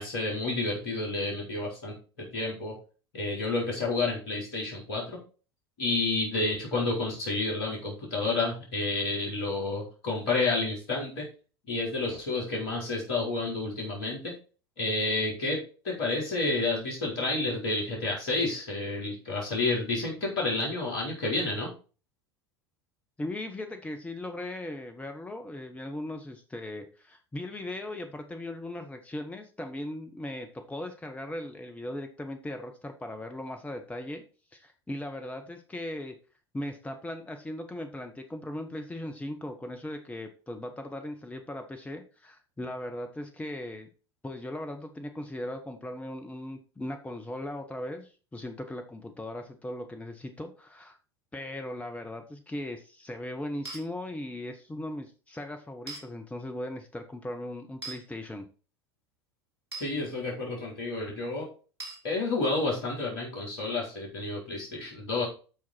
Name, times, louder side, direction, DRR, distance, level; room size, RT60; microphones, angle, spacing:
voice 1, 0.0-2.7 3.1-5.2 5.8-11.3 11.7-14.3 14.8-21.7 59.8-61.5 62.0-65.2, left 3 dB, 60° left, -3 dB, 4.7 m, -30 dB
voice 2, 23.2-34.2 34.5-36.2 36.5-43.9 44.2-51.0 51.3-58.5, left 1 dB, 10° left, 5 dB, 1.4 m, -38 dB
sound 1, 53.6-53.8 55.9-56.0 57.8-58.0 59.7-59.9 61.8-62.0, right 3 dB, 80° right, 2.4 m, -39 dB
13.5 x 4.6 x 4.5 m, 0.35 s
figure-of-eight pair, 75°, 13 cm